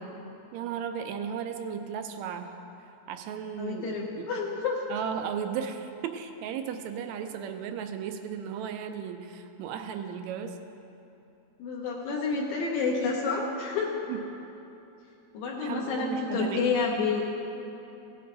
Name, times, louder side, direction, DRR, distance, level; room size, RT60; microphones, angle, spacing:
voice 1, 0.5-2.6 3.1-4.3 4.9-10.6 14.1-14.2 15.6-16.7, right 7 dB, 80° right, 7 dB, 1.8 m, -35 dB
voice 2, 3.6-4.8 11.6-13.9 15.3-17.2, left 4 dB, 75° left, -3 dB, 2.3 m, -29 dB
17.0 x 7.8 x 3.9 m, 3.0 s
omnidirectional pair, 3.5 m